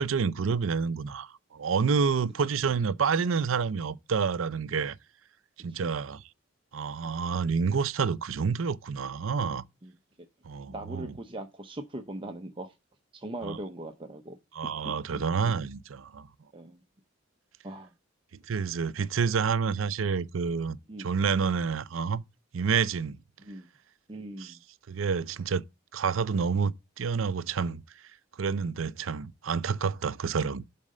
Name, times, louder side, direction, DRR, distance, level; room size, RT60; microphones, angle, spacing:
voice 1, 0.0-5.0 5.6-6.2 6.7-9.6 10.5-11.1 13.4-13.6 14.5-16.3 18.5-22.2 22.5-23.2 24.4-24.5 24.9-25.6 25.9-27.8 28.4-30.6, right 5 dB, 80° right, 0.5 m, -28 dB
voice 2, 5.6-6.0 9.8-9.9 10.7-12.7 13.1-14.4 15.4-15.5 16.5-16.8 17.6-17.9 18.5-18.6 20.9-21.1 23.4-23.7 24.1-24.6, right 1 dB, 25° right, 0.7 m, -40 dB
7.3 x 4.2 x 6.4 m
head